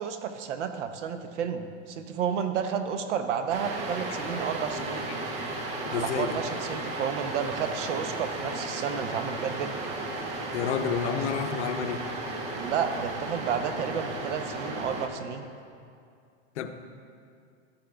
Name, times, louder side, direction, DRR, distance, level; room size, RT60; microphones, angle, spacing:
voice 1, 0.0-5.1 5.9-9.7 12.6-15.5, right 7 dB, 80° right, 8 dB, 0.8 m, -31 dB
sound 1, 3.5-15.1, right 2 dB, 20° right, 0.5 m, -34 dB
voice 2, 5.9-6.4 10.5-12.0 16.6-16.7, left 7 dB, 75° left, 8 dB, 0.8 m, -29 dB
12.5 x 8.7 x 2.3 m, 2.4 s
supercardioid pair, 155°, 35 cm